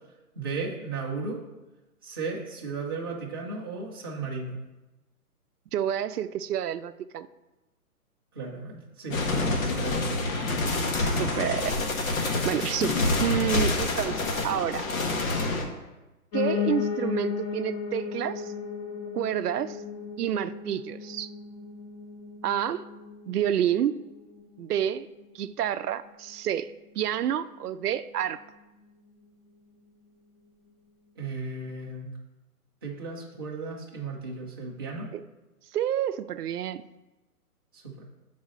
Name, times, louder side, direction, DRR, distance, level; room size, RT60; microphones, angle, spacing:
voice 1, 0.3-1.4 2.0-4.6 8.3-10.5 11.1-11.3 31.2-32.1 32.8-35.1 37.7-37.9, right 4 dB, 15° right, -5 dB, 0.4 m, -35 dB
voice 2, 5.7-7.3 10.9-14.8 16.3-18.5 19.1-19.8 20.2-21.3 22.4-22.8 23.3-24.0 24.6-25.1 25.3-28.4 35.1-35.2 35.7-36.9, right 10 dB, 80° right, 13 dB, 0.5 m, -29 dB
sound 1, 9.1-15.6, left 2 dB, 60° left, 1.2 m, -27 dB
Piano, 16.3-25.4 25.8-27.0 27.3-27.4 27.6-27.7 27.9-28.0 28.6-28.7, left 7 dB, 80° left, 1.8 m, -35 dB
7.3 x 4.1 x 3.7 m, 1.1 s
hypercardioid pair, 145°, 46 cm